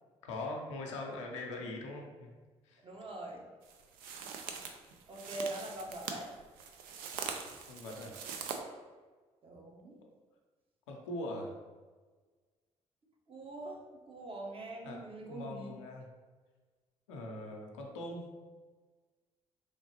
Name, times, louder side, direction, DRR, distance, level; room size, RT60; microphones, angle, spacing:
voice 1, 0.2-2.3 2.6-2.8 7.6-8.2 10.9-11.6 14.8-16.1 17.1-18.3, left 2 dB, 90° left, 1 dB, 0.5 m, -42 dB
voice 2, 2.8-3.4 5.1-6.3 9.4-10.0 13.3-13.8 14.0-15.7, right 2 dB, 40° right, -1 dB, 1.0 m, -43 dB
sound 1, 3.6-8.6, right 6 dB, 75° right, 0.4 m, -43 dB
3.7 x 3.1 x 2.9 m, 1.4 s
hypercardioid pair, 50°, 15 cm